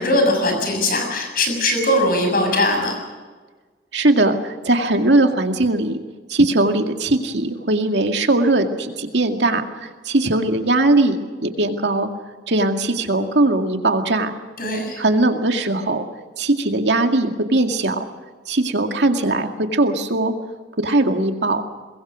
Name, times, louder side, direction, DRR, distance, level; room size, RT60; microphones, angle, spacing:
voice 1, 0.0-3.0 14.6-15.0, left 1 dB, 55° left, 4 dB, 6.8 m, -20 dB
voice 2, 3.9-6.0 6.3-12.1 12.5-14.3 15.0-16.0 16.4-18.1 18.5-20.3 20.8-21.6, right 2 dB, 80° right, 4 dB, 2.2 m, -19 dB
23.5 x 21.5 x 6.3 m, 1.4 s
head